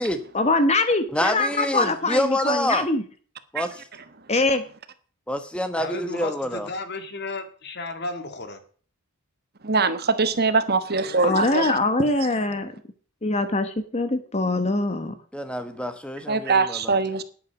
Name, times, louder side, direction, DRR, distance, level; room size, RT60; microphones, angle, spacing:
voice 1, 0.3-3.0 4.3-4.6 11.2-12.7 13.2-15.2, left 2 dB, 30° left, 1.0 m, -23 dB
voice 2, 1.1-2.9 3.5-3.8 5.3-6.7 15.3-17.0, left 1 dB, 5° left, 1.2 m, -27 dB
voice 3, 5.8-8.6 11.0-11.7, left 3 dB, 50° left, 2.0 m, -34 dB
voice 4, 9.6-11.8 16.3-17.2, right 4 dB, 45° right, 1.2 m, -22 dB
10.5 x 8.6 x 7.1 m
head